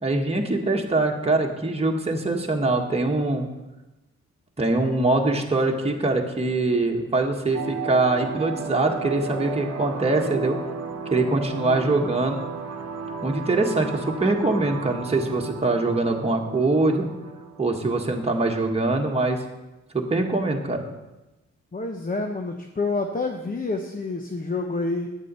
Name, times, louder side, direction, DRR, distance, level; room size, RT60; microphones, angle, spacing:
voice 1, 0.0-3.5 4.6-10.6 11.1-12.4 13.2-17.1 17.6-19.4 19.9-20.8, right 2 dB, 20° right, 1 dB, 1.6 m, -23 dB
sound 1, 7.5-18.5, right 5 dB, 55° right, 1.1 m, -34 dB
voice 2, 11.6-12.1 18.1-18.2 21.7-25.1, left 3 dB, 30° left, 3 dB, 1.0 m, -28 dB
9.5 x 7.4 x 5.5 m, 1.0 s
cardioid pair, 65°, 29 cm